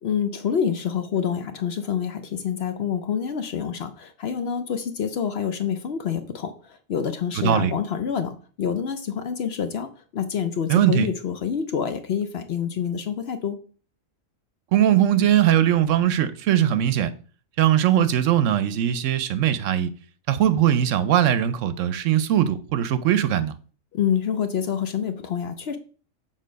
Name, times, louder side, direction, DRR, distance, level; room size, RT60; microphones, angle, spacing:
voice 1, 0.0-13.6 23.9-25.8, left 7 dB, 60° left, 0.8 m, -27 dB
voice 2, 10.7-11.1 14.7-17.1 17.6-19.9 20.3-23.5, right 11 dB, 70° right, 0.9 m, -20 dB
6.6 x 3.8 x 5.1 m
omnidirectional pair, 1.4 m